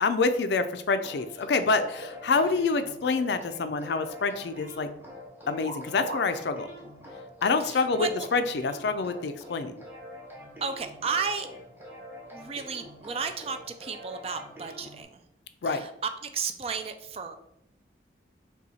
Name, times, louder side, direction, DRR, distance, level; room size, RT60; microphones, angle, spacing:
voice 1, 0.0-4.9 5.5-6.7 7.4-9.8 15.6-15.8, left 4 dB, 70° left, 10 dB, 0.4 m, -27 dB
sound 1, 1.0-15.0, left 1 dB, 10° right, 0.9 m, -46 dB
sound 2, 1.7-2.7 3.1-4.1 4.5-4.8 5.6-6.4 6.8-6.9 7.9-8.7 9.6-9.7 10.6-10.8, right 1 dB, 80° right, 0.7 m, -43 dB
voice 2, 7.6-8.3 10.6-11.5 12.3-15.2 15.7-17.4, right 5 dB, 35° right, 8 dB, 0.4 m, -33 dB
5.5 x 2.3 x 4.1 m, 0.77 s
head